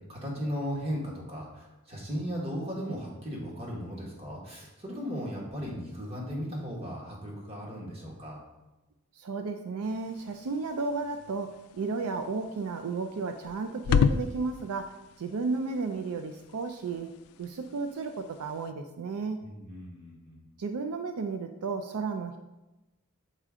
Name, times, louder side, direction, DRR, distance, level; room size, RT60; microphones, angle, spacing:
voice 1, 0.1-8.4 19.4-20.4, equal, 30° right, -3 dB, 1.7 m, -36 dB
voice 2, 9.1-17.1 17.4-19.4 20.6-22.4, right 4 dB, 85° right, 6 dB, 0.4 m, -33 dB
sound 1, 9.8-18.7, left 6 dB, 85° left, 0.3 m, -34 dB
6.7 x 4.9 x 3.6 m, 1.0 s
head